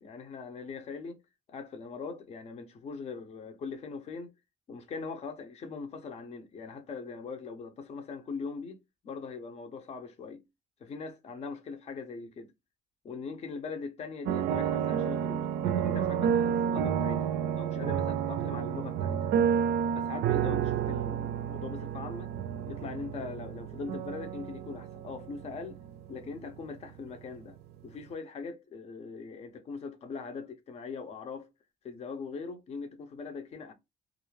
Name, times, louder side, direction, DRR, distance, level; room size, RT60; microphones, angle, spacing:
voice 1, 0.0-1.2 1.5-4.3 4.7-8.8 9.0-10.4 10.8-12.5 13.0-17.3 17.5-19.3 19.9-22.3 22.7-25.8 26.1-27.6 27.8-31.5 31.8-33.7, left 4 dB, 40° left, 0.6 m, -41 dB
sound 1, 14.3-27.3 27.6-27.7, right 8 dB, 75° right, 0.4 m, -30 dB
2.4 x 2.1 x 3.0 m
cardioid pair, 110°, 17 cm